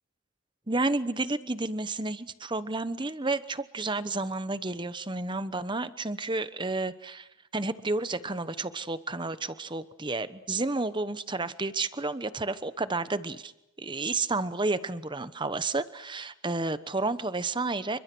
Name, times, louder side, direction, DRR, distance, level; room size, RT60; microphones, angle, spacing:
voice 1, 0.7-13.5 13.8-18.0, right 3 dB, 20° right, 13 dB, 1.0 m, -31 dB
29.0 x 24.5 x 6.2 m, 0.91 s
head